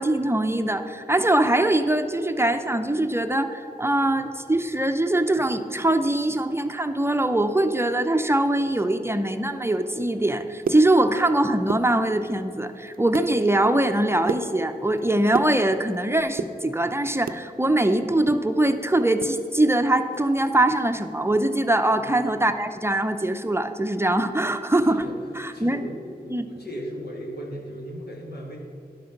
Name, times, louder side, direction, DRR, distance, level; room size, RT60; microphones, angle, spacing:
voice 1, 0.0-25.0 25.4-25.8 26.3-26.5, right 1 dB, 15° right, 8 dB, 0.6 m, -22 dB
sound 1, 10.4-11.3 11.6-12.4 12.8-13.3 13.7-16.0 16.3-17.5 17.8-19.4 19.6-19.7 20.1-20.3 20.7-20.9, right 5 dB, 65° right, 0.5 m, -32 dB
voice 2, 24.8-28.6, equal, 85° left, -1 dB, 2.0 m, -37 dB
11.5 x 6.2 x 5.9 m, 2.8 s
wide cardioid pair, 65°, 16 cm